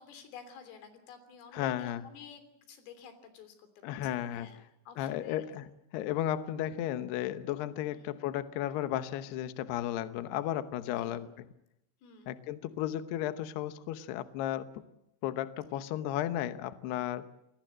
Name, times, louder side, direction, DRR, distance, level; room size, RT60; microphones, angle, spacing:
voice 1, 0.0-5.5 7.8-8.2 11.0-11.2 12.0-12.4 15.7-15.9, left 6 dB, 85° left, 10 dB, 5.9 m, -52 dB
voice 2, 1.5-2.0 3.8-4.5 5.0-5.7 5.9-11.3 12.3-14.8 15.2-17.3, left 12 dB, 70° left, 11 dB, 2.7 m, -34 dB
28.0 x 21.5 x 7.6 m, 0.82 s
omnidirectional pair, 5.7 m